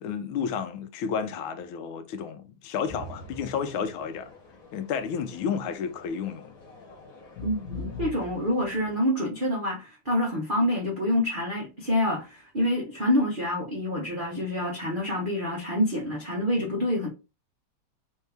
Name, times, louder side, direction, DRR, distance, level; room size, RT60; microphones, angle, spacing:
voice 1, 0.0-4.3 4.7-6.5, left 6 dB, 75° left, 1.3 m, -31 dB
sound 1, 2.9-9.0, left 3 dB, 45° left, 1.5 m, -43 dB
voice 2, 7.4-17.1, left 1 dB, 45° right, 0.6 m, -27 dB
4.2 x 2.7 x 3.4 m
omnidirectional pair, 2.4 m